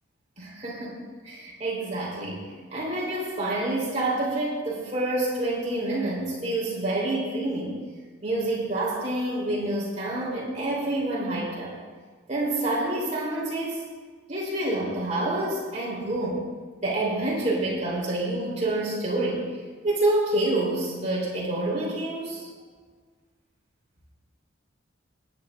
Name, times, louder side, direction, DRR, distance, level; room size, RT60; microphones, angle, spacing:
voice 1, 0.4-7.7 8.2-11.7 12.3-13.8 14.3-16.4 16.8-19.5 19.8-22.5, right 1 dB, 35° right, -5 dB, 3.3 m, -28 dB
21.0 x 10.0 x 2.5 m, 1.5 s
head